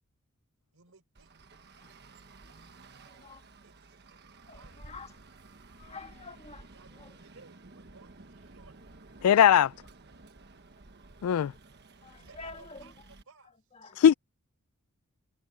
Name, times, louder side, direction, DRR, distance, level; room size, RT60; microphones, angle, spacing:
voice 1, 0.7-1.5 3.6-4.0 4.5-5.0 6.7-9.4 12.2-13.5, right 4 dB, 65° right, 4.4 m, -59 dB
Traffic noise roadway noise, 1.1-13.2, right 3 dB, 50° right, 1.3 m, -53 dB
voice 2, 1.8-2.3 3.2-3.4 4.5-4.6 4.8-5.1 5.8-6.6 7.0-7.1 12.0-12.9 13.7-14.0, left 3 dB, 30° left, 1.5 m, -47 dB
voice 3, 9.2-9.7 11.2-11.5 14.0-14.1, left 9 dB, 85° left, 0.3 m, -19 dB
head